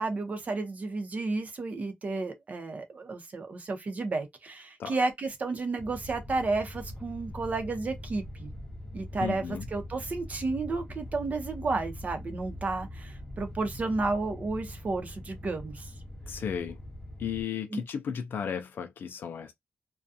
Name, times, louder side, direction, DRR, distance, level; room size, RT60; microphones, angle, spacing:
voice 1, 0.0-8.5 8.9-15.9 17.7-17.8, right 3 dB, 45° right, 0.7 m, -32 dB
sound 1, 5.8-17.4, left 1 dB, 10° left, 0.7 m, -42 dB
voice 2, 9.2-9.7 16.3-16.8 17.2-19.5, left 8 dB, 75° left, 0.4 m, -34 dB
2.4 x 2.2 x 2.6 m
wide cardioid pair, 115°, 4 cm